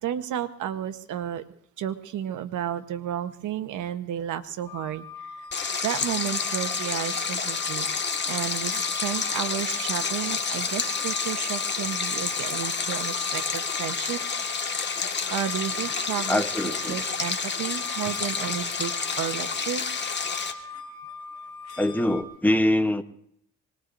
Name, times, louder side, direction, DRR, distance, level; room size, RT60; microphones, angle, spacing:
voice 1, 0.0-1.4 1.8-5.4 5.8-14.2 15.3-19.8, right 10 dB, 80° right, 10 dB, 1.1 m, -32 dB
sound 1, 4.7-22.2, left 4 dB, 65° left, 4.5 m, -41 dB
Stream, 5.5-20.5, left 5 dB, 35° left, 1.7 m, -29 dB
voice 2, 16.3-17.0 21.8-23.0, left 1 dB, 5° left, 9 dB, 0.9 m, -24 dB
25.0 x 20.0 x 2.6 m, 0.69 s
cardioid pair, 90°, 30 cm